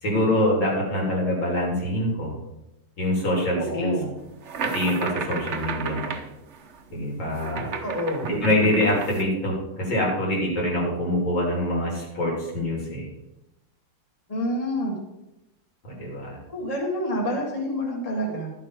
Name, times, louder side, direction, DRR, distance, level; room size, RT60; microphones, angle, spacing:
voice 1, 0.0-2.4 3.0-3.9 4.6-6.1 6.9-7.7 8.2-13.1 15.8-16.4, left 1 dB, 65° left, -3 dB, 4.4 m, -25 dB
voice 2, 3.6-4.1 7.8-8.3 14.3-15.0 16.5-18.5, equal, 20° left, -1 dB, 2.0 m, -28 dB
sound 1, 4.3-9.2, right 5 dB, 50° right, 0.9 m, -33 dB
12.5 x 7.4 x 6.0 m, 0.92 s
omnidirectional pair, 2.3 m